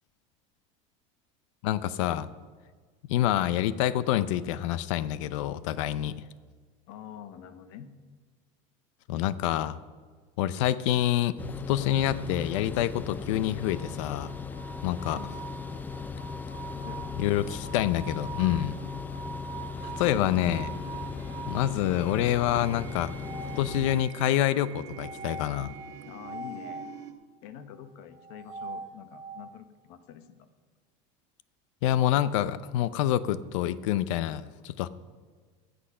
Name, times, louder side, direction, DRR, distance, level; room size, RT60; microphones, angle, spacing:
voice 1, 1.6-2.3 3.1-6.1 9.1-9.8 10.4-11.4 11.7-14.3 14.8-15.2 17.2-18.8 19.8-20.7 21.5-23.1 23.6-25.7 31.8-34.9, left 12 dB, 85° left, 16 dB, 0.6 m, -27 dB
voice 2, 6.9-7.9 15.1-15.6 16.7-17.2 26.0-26.9 27.4-30.5, left 9 dB, 60° left, 11 dB, 1.0 m, -46 dB
sound 1, 11.4-24.0, left 5 dB, 10° left, 0.4 m, -38 dB
sound 2, 13.6-21.7 22.9-24.2 25.0-26.9 28.1-29.5, right 4 dB, 20° right, 1.9 m, -43 dB
sound 3, 19.7-27.1, right 10 dB, 70° right, 1.2 m, -47 dB
14.5 x 8.2 x 5.5 m, 1.5 s
cardioid pair, 165°, 16 cm